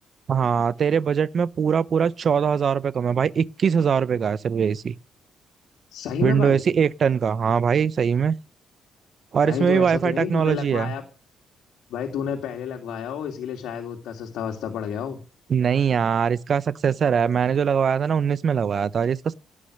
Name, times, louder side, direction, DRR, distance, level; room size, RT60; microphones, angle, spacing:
voice 1, 0.3-4.9 6.2-8.4 9.3-10.9 15.5-19.3, right 7 dB, 40° right, 0.7 m, -22 dB
voice 2, 5.9-6.6 9.4-11.0 11.9-15.2, left 8 dB, 90° left, 2.8 m, -30 dB
17.5 x 9.9 x 6.5 m
cardioid pair, 155°, 0 cm